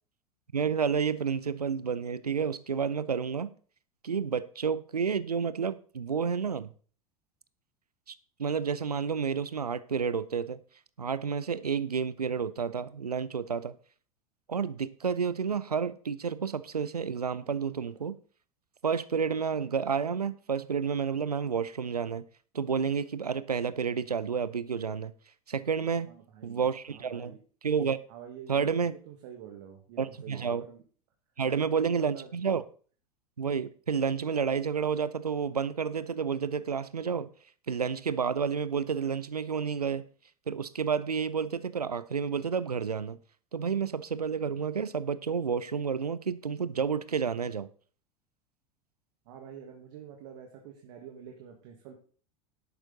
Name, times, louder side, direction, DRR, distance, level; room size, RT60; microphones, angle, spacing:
voice 1, 0.5-3.5 4.0-6.7 8.1-10.6 11.0-13.7 14.5-18.2 18.8-22.2 22.5-25.1 25.5-26.1 26.4-27.4 27.6-28.0 28.5-28.9 30.0-30.7 31.4-32.6 33.4-37.3 37.7-40.0 40.5-43.2 43.5-47.7, right 6 dB, 85° right, 0.6 m, -30 dB
voice 2, 26.0-27.4 28.1-30.8 31.5-32.3 49.2-52.0, right 9 dB, 55° right, 1.8 m, -47 dB
11.5 x 8.8 x 4.0 m
figure-of-eight pair, 80°, 20 cm